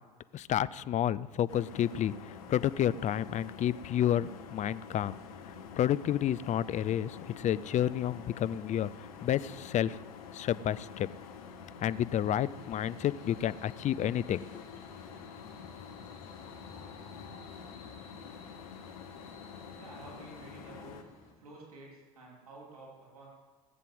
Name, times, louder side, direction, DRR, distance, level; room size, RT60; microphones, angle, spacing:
voice 1, 0.3-5.1 5.8-8.9 9.2-10.0 10.3-11.1 11.8-14.8, left 11 dB, 40° left, 17 dB, 0.6 m, -30 dB
sound 1, 1.5-21.0, left 6 dB, 75° left, 1.3 m, -47 dB
sound 2, 2.3-21.3, left 3 dB, 55° left, 5.1 m, -58 dB
voice 2, 19.7-23.3, right 2 dB, 85° right, -3 dB, 3.6 m, -51 dB
18.5 x 7.6 x 7.9 m, 1.4 s
hypercardioid pair, 70°, 19 cm